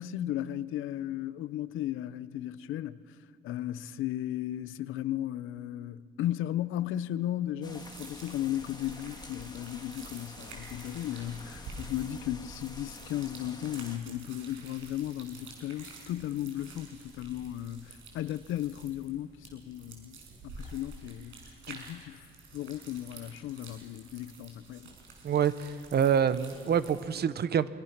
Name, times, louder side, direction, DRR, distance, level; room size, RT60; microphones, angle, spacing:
voice 1, 0.0-3.0 3.4-20.2 20.4-21.4 21.7-22.2 22.5-24.9, left 12 dB, 85° left, 0.7 m, -35 dB
sound 1, 7.6-14.0, left 2 dB, 20° left, 2.2 m, -49 dB
sound 2, 7.7-27.0, right 3 dB, 80° right, 5.8 m, -50 dB
voice 2, 25.2-27.7, right 8 dB, 55° right, 1.1 m, -27 dB
26.0 x 24.0 x 6.0 m
cardioid pair, 90°, 20 cm